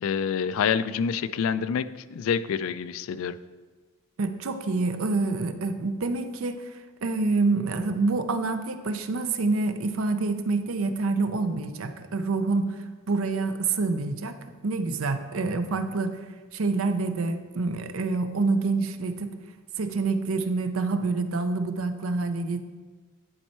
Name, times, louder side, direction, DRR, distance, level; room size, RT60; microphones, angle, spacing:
voice 1, 0.0-3.4, left 7 dB, 75° left, 15 dB, 0.3 m, -27 dB
voice 2, 4.2-6.7 7.0-12.8 13.1-14.4 14.6-16.2 16.5-19.3 19.8-22.6, right 3 dB, 80° right, 9 dB, 0.6 m, -27 dB
10.5 x 4.4 x 4.3 m, 1.4 s
head